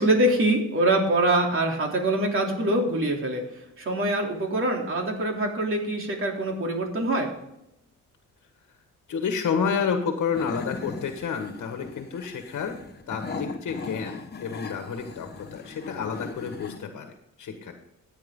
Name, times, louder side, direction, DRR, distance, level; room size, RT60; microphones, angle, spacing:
voice 1, 0.0-3.4 3.8-7.3, right 1 dB, 40° right, 1 dB, 3.2 m, -24 dB
voice 2, 9.1-12.8 13.1-17.7, left 6 dB, 60° left, 5 dB, 1.7 m, -30 dB
sound 1, 10.3-16.8, left 4 dB, 30° left, 1.2 m, -39 dB
14.0 x 9.5 x 3.8 m, 0.82 s
cardioid pair, 130°, 33 cm